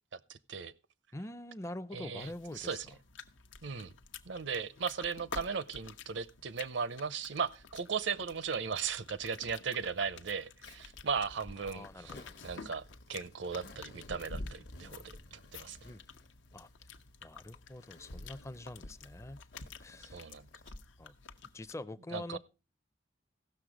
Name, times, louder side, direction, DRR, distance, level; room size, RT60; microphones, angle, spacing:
voice 1, 0.1-0.7 1.9-2.9 3.6-3.9 4.3-12.1 12.4-12.8 13.1-15.0 15.3-15.8 20.1-20.5 22.1-22.4, right 6 dB, 70° right, 0.7 m, -37 dB
voice 2, 1.1-2.8 11.6-12.3 15.8-16.0 16.5-16.7 17.2-19.4 19.8-20.3 21.0-21.1 21.5-22.4, left 1 dB, 15° left, 0.5 m, -44 dB
sound 1, 2.2-21.7, left 4 dB, 90° left, 0.9 m, -50 dB
Zipper (clothing), 10.6-20.7, left 2 dB, 60° left, 1.0 m, -57 dB
16.0 x 6.5 x 5.0 m
head